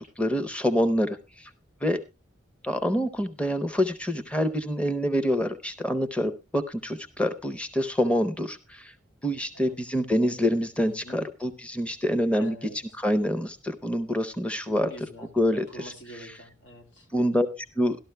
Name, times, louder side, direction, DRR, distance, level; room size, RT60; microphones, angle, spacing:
voice 1, 0.2-1.5 1.8-2.0 2.6-8.9 9.2-12.6 13.0-14.9 15.2-15.9 16.2-16.3 17.1-18.0, equal, 5° left, 9 dB, 0.6 m, -26 dB
voice 2, 9.5-10.0 10.8-11.2 12.4-13.0 14.7-17.1, equal, 80° left, 4 dB, 2.1 m, -46 dB
13.0 x 12.0 x 3.3 m, 0.27 s
head